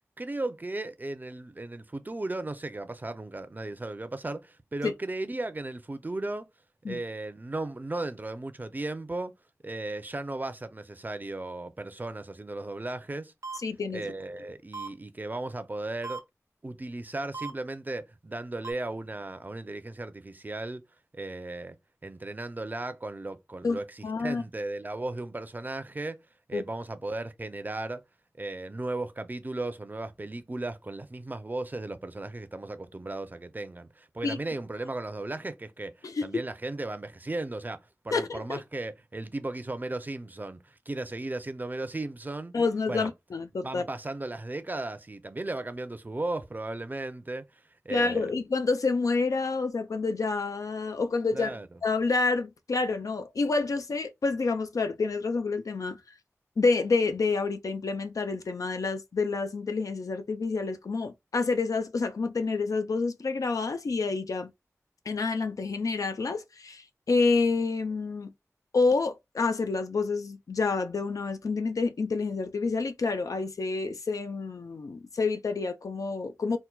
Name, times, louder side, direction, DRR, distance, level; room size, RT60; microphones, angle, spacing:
voice 1, 0.2-6.5 6.9-9.3 9.6-13.3 13.9-16.2 16.6-20.8 21.1-21.8 22.0-26.2 26.5-28.0 28.4-42.5 42.9-43.1 43.6-48.3 51.3-51.7, right 2 dB, 35° right, 0.5 m, -36 dB
sound 1, 13.4-13.6 14.7-14.9 16.0-16.2 17.3-17.5 18.6-18.7, right 4 dB, 75° right, 0.7 m, -36 dB
voice 2, 13.6-14.1 23.6-23.8 24.0-24.4 26.5-26.6 34.2-34.4 36.0-36.3 38.1-38.6 42.5-43.8 47.9-51.5 51.8-56.0 56.6-64.5 65.1-68.3 68.7-76.6, left 4 dB, 90° left, 0.4 m, -28 dB
4.4 x 2.2 x 2.2 m
wide cardioid pair, 65°, 6 cm